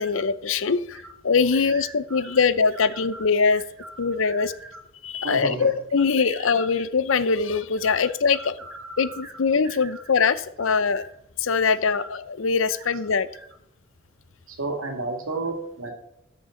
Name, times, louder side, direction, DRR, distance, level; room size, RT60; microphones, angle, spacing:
voice 1, 0.0-1.0 1.2-3.6 4.0-4.5 5.0-8.5 9.0-11.0 11.4-13.3, left 5 dB, 75° left, 15 dB, 0.6 m, -22 dB
voice 2, 1.6-2.4 2.7-3.3 3.5-4.8 5.2-5.7 6.2-6.7 7.8-9.3 9.6-10.0 10.6-11.1 11.8-12.1 12.7-12.9 13.3-13.4 14.5-15.9, right 2 dB, 90° right, 4 dB, 2.2 m, -36 dB
13.5 x 6.9 x 3.8 m, 0.79 s
head